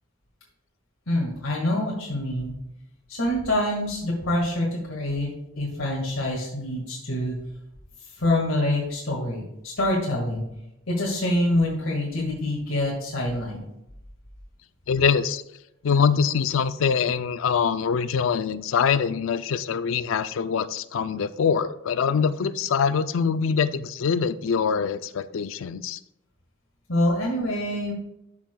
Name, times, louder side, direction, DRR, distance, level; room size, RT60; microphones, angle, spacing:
voice 1, 1.1-2.5 3.1-5.3 5.6-7.3 8.2-10.4 10.9-13.6 26.9-27.9, left 1 dB, 85° left, -3 dB, 1.7 m, -26 dB
voice 2, 14.9-15.4 15.8-26.0, left 6 dB, 70° left, 14 dB, 0.4 m, -24 dB
12.0 x 6.0 x 2.2 m, 0.85 s
head